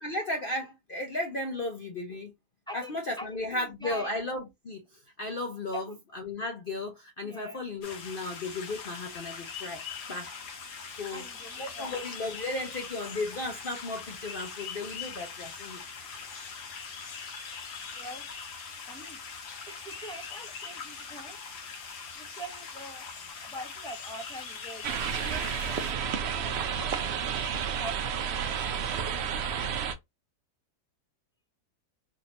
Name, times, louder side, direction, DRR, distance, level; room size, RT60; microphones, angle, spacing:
voice 1, 0.0-2.3 2.7-4.8 5.2-9.8 10.1-10.3 10.9-11.3 11.6-15.8, left 2 dB, 55° left, 0.6 m, -35 dB
voice 2, 2.7-4.1 5.7-6.0 7.2-7.6 11.1-12.0 17.9-18.3 18.9-19.2 19.7-23.1 23.4-26.1, right 1 dB, 5° left, 0.5 m, -45 dB
sound 1, 7.8-25.9, left 5 dB, 75° left, 1.5 m, -42 dB
sound 2, 24.8-29.9, right 7 dB, 75° right, 0.6 m, -31 dB
3.7 x 2.6 x 2.8 m
omnidirectional pair, 1.8 m